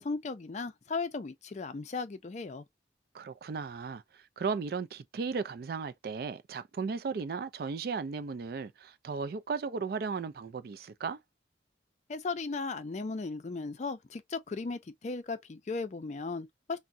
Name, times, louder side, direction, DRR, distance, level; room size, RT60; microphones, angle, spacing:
voice 1, 0.0-2.6 12.1-16.8, left 4 dB, 40° left, 0.4 m, -36 dB
voice 2, 3.1-11.2, right 5 dB, 55° right, 0.3 m, -36 dB
3.5 x 2.1 x 2.5 m
head